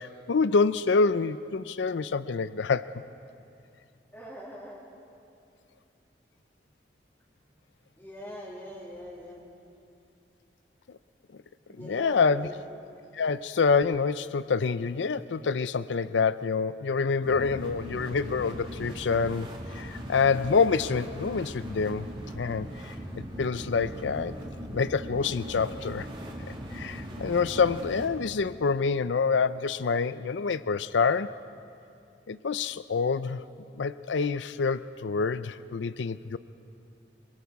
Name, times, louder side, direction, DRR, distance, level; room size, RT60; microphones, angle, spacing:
voice 1, 0.0-2.9 11.8-12.5 13.1-22.1 22.4-22.9 23.4-24.3 24.7-26.1 26.7-31.4 32.3-33.4 33.8-36.4, left 5 dB, 90° left, 15 dB, 0.5 m, -27 dB
voice 2, 4.1-4.8 8.0-9.4 11.7-12.5, equal, 10° left, -8 dB, 2.7 m, -42 dB
sound 1, 17.2-28.1, equal, 30° right, 2.5 m, -39 dB
26.0 x 25.5 x 4.7 m, 2.5 s
head